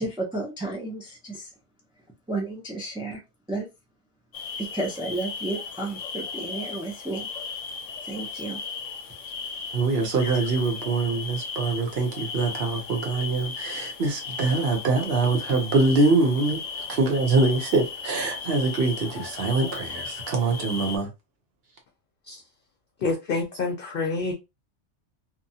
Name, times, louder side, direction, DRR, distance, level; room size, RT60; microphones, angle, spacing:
voice 1, 0.0-1.5 2.3-3.2 3.5-3.7 4.6-7.3 8.0-8.6 10.2-10.4, right 2 dB, 10° right, 0.3 m, -32 dB
sound 1, 4.3-21.0, left 5 dB, 85° left, 0.9 m, -36 dB
voice 2, 9.7-16.6 16.9-21.1, right 3 dB, 60° right, 1.0 m, -24 dB
voice 3, 23.0-24.3, left 3 dB, 55° left, 0.7 m, -27 dB
2.9 x 2.2 x 2.7 m
omnidirectional pair, 1.2 m